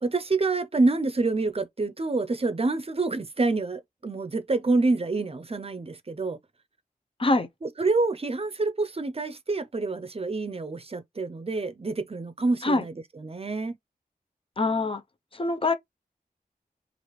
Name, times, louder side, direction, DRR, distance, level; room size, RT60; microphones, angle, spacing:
voice 1, 0.0-6.4 7.6-13.8, right 3 dB, 40° right, 0.6 m, -27 dB
voice 2, 14.6-15.0 15.3-15.7, left 2 dB, 35° left, 0.6 m, -24 dB
3.3 x 2.5 x 3.0 m
cardioid pair, 50°, 16 cm